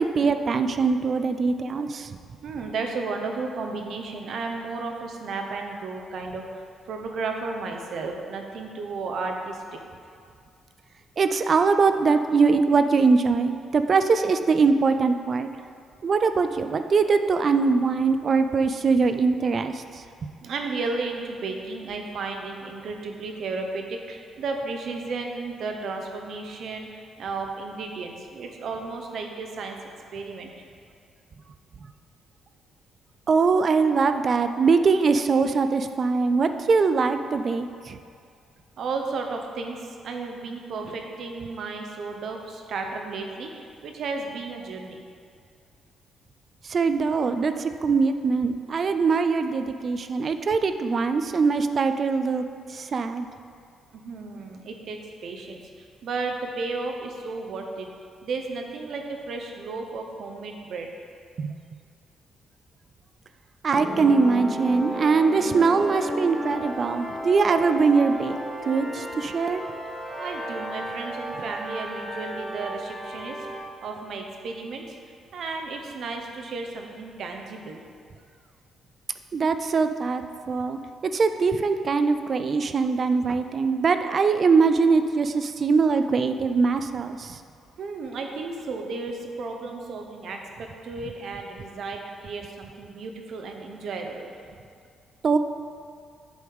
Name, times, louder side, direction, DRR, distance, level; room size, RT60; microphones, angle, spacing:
voice 1, 0.0-2.2 11.2-15.5 16.0-20.3 33.3-38.0 46.6-52.4 52.7-53.3 61.4-61.5 63.6-68.4 68.7-69.6 79.3-80.8 81.1-87.4 95.2-95.4, right 4 dB, 45° right, 9 dB, 0.4 m, -22 dB
voice 2, 2.4-6.4 6.9-9.8 20.0-20.1 20.4-29.8 30.1-30.5 38.8-45.0 53.9-57.9 58.2-60.9 70.2-73.5 73.8-75.0 75.3-77.8 87.8-94.3, right 3 dB, 65° right, 3 dB, 0.8 m, -33 dB
sound 1, 63.7-73.6, equal, ahead, 1.4 m, -33 dB
7.9 x 3.6 x 4.6 m, 2.2 s
cardioid pair, 90°, 0 cm